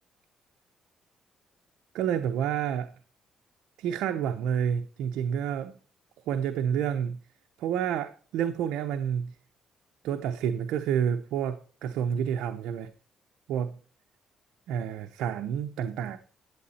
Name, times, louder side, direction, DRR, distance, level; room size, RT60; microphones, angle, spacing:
voice 1, 1.9-2.9 3.8-5.8 6.3-7.2 7.6-9.4 10.0-12.9 13.5-13.8 14.7-16.2, right 8 dB, 90° right, 0.7 m, -29 dB
11.5 x 7.9 x 4.2 m
cardioid pair, 90°, 0 cm